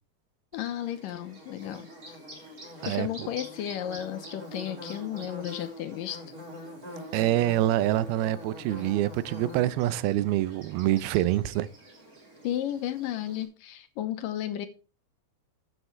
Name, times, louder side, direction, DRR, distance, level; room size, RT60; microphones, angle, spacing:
voice 1, 0.5-1.9 2.9-6.2 6.9-7.0 12.4-14.7, left 11 dB, 75° left, 2.3 m, -33 dB
Bird / Buzz, 0.5-13.4, equal, 25° right, 3.7 m, -45 dB
voice 2, 7.1-11.7, right 14 dB, 85° right, 2.6 m, -26 dB
13.0 x 8.1 x 3.2 m
omnidirectional pair, 4.4 m